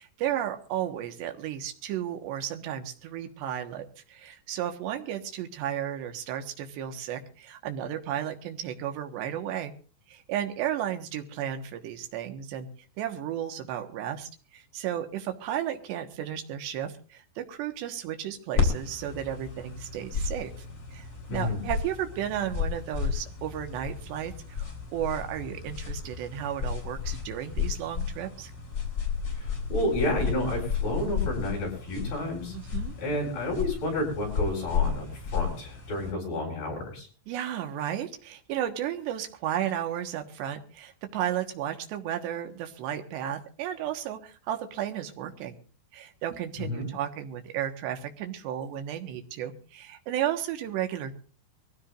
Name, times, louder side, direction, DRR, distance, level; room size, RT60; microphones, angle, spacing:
voice 1, 0.0-9.7 10.1-12.7 13.0-20.5 20.9-28.5 32.5-32.9 37.3-45.6 45.9-51.1, right 10 dB, 80° right, 6 dB, 3.6 m, -33 dB
sound 1, 18.6-36.1, left 6 dB, 25° left, 3.7 m, -32 dB
voice 2, 21.3-21.6 29.3-32.6 33.0-37.1 46.6-46.9, left 1 dB, 55° left, 0 dB, 9.9 m, -30 dB
23.5 x 16.0 x 2.6 m, 0.40 s
omnidirectional pair, 4.9 m